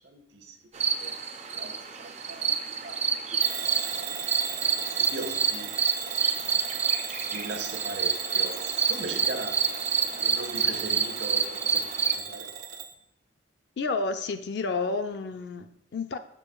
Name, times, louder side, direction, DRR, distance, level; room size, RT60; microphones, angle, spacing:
voice 1, 0.0-1.1 1.5-1.7 2.3-2.5 2.8-3.0 4.9-5.7 6.4-6.6 7.3-9.6 10.1-12.5, right 2 dB, 70° right, 4 dB, 0.9 m, -39 dB
sound 1, 0.7-12.2, right 6 dB, 35° right, 0.4 m, -28 dB
Bell / Alarm, 3.4-12.9, right 7 dB, 85° right, 0.6 m, -37 dB
voice 2, 13.8-16.2, left 3 dB, 60° left, 8 dB, 0.4 m, -30 dB
6.8 x 6.7 x 2.3 m, 0.76 s
head